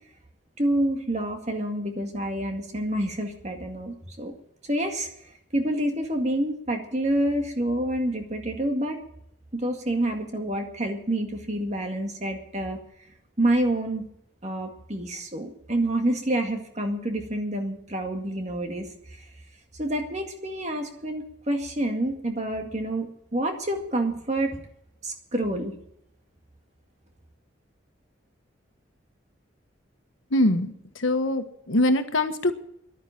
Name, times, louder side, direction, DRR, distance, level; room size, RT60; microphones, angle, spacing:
voice 1, 0.6-4.4 4.7-5.1 5.5-9.0 9.5-12.8 13.4-14.0 14.4-18.9 19.7-24.6 25.0-25.7, right 1 dB, 35° right, 4 dB, 2.0 m, -28 dB
voice 2, 30.3-32.5, left 1 dB, 85° left, 8 dB, 1.3 m, -23 dB
11.0 x 9.6 x 10.0 m, 0.74 s
head